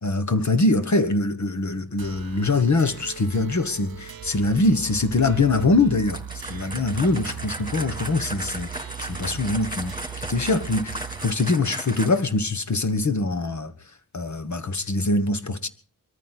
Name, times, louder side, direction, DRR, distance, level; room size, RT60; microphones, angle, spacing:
voice 1, 0.0-6.2 6.5-9.9 10.3-13.7 14.1-15.7, left 2 dB, 55° left, 1.5 m, -23 dB
sound 1, 2.0-11.4, right 9 dB, 90° right, 0.8 m, -39 dB
sound 2, 6.1-12.4, right 1 dB, 10° right, 3.5 m, -36 dB
23.0 x 14.0 x 4.1 m
wide cardioid pair, 85°, 35 cm